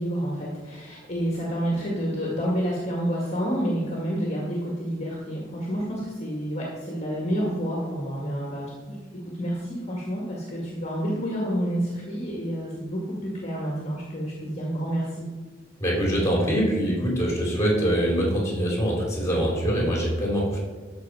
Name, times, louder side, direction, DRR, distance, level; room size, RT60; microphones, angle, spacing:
voice 1, 0.0-9.0 9.4-15.2, equal, 35° left, -4 dB, 1.9 m, -29 dB
voice 2, 15.8-20.6, equal, 15° left, -3 dB, 3.6 m, -24 dB
13.0 x 6.3 x 4.8 m, 1.3 s
head